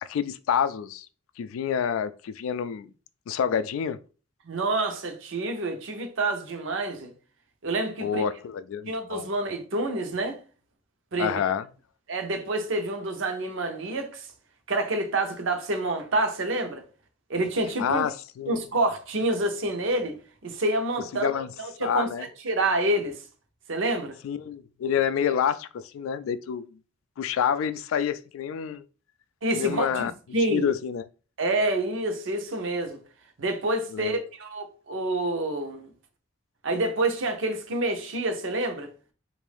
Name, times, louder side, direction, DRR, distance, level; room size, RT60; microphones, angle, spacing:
voice 1, 0.0-1.1 1.4-2.9 3.3-4.0 8.0-9.3 11.2-11.7 17.8-18.6 21.1-21.5 21.8-22.3 24.2-26.8 27.2-28.8 29.5-30.1 30.4-31.1 33.9-34.2, left 8 dB, 85° left, 0.3 m, -28 dB
voice 2, 4.5-7.1 7.6-8.3 8.9-10.4 11.1-11.4 12.1-14.3 14.7-16.8 17.3-18.0 18.5-21.3 21.6-23.2 23.7-24.1 29.4-30.0 30.3-30.7 31.4-33.0 33.4-35.9 36.6-38.9, right 2 dB, 70° right, 0.8 m, -28 dB
3.5 x 2.5 x 3.4 m
head